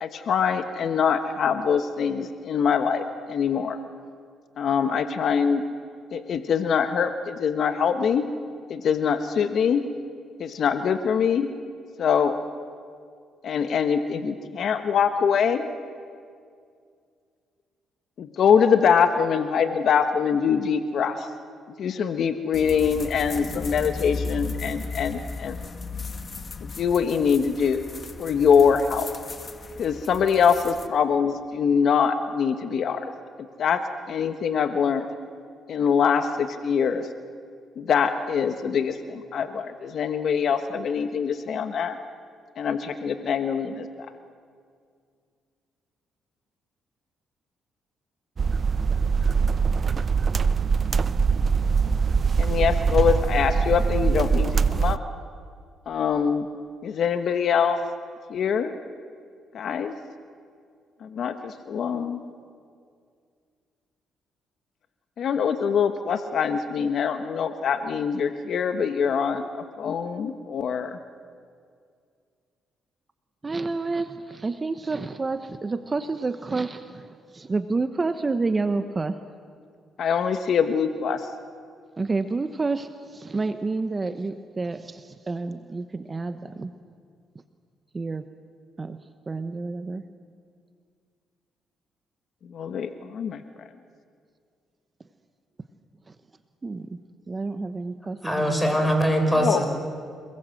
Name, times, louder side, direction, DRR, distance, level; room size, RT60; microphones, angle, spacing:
voice 1, 0.0-3.8 4.6-5.6 6.1-8.3 8.7-9.8 10.4-11.5 12.0-12.3 13.4-15.7 18.2-21.3 21.8-25.6 26.6-27.8 28.2-29.1 29.8-33.1 33.6-33.8 34.1-35.0 35.7-37.1 37.8-42.0 42.6-44.1 52.4-55.0 55.9-56.5 56.8-57.8 58.3-58.7 59.5-59.9 61.0-62.2 65.2-71.0 80.0-81.3 92.4-93.4 99.4-99.6, left 7 dB, 65° left, 8 dB, 1.2 m, -24 dB
sound 1, 22.5-30.9, left 4 dB, 35° left, 1.5 m, -36 dB
sound 2, 48.4-55.0, right 5 dB, 45° right, 0.6 m, -22 dB
voice 2, 73.4-79.2 82.0-86.7 87.9-88.3 88.8-89.0 89.3-90.1 96.1-96.2 96.6-97.0 97.3-98.7, right 3 dB, 25° right, 9 dB, 1.0 m, -29 dB
voice 3, 98.2-99.7, equal, 5° left, 3 dB, 5.8 m, -22 dB
28.5 x 20.5 x 7.8 m, 2.2 s
cardioid pair, 90°, 0 cm